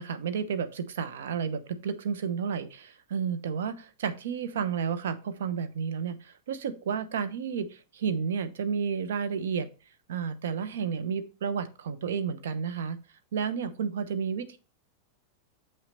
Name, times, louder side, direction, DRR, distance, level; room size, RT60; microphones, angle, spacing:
voice 1, 0.0-9.7 10.1-13.0 13.3-14.6, right 6 dB, 60° right, 9 dB, 0.9 m, -31 dB
7.4 x 5.8 x 4.1 m, 0.33 s
figure-of-eight pair, 90°, 0 cm